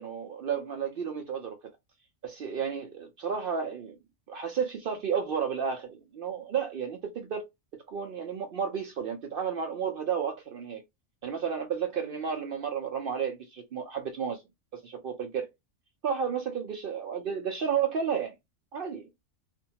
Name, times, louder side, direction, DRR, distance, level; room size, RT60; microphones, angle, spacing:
voice 1, 0.0-1.6 2.2-3.9 4.3-7.4 7.9-10.8 11.2-14.4 14.8-15.5 16.0-18.3 18.7-19.1, right 7 dB, 60° right, 0.6 m, -32 dB
2.5 x 2.2 x 2.7 m
omnidirectional pair, 1.3 m